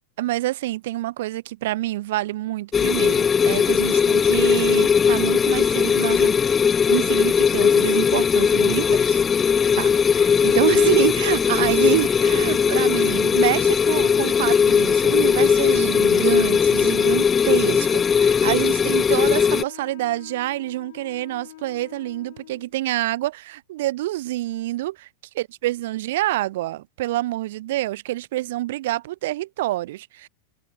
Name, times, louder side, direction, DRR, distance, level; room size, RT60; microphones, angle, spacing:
voice 1, 0.2-6.4 6.9-9.2 9.7-25.1 25.6-30.3, right 16 dB, 55° right, 0.8 m, -27 dB
sound 1, 2.7-19.6, left 6 dB, 20° left, 0.8 m, -19 dB
Wind instrument woodwind instrument, 16.9-22.7, left 15 dB, 55° left, 2.8 m, -45 dB
figure-of-eight pair, 90°, 0 cm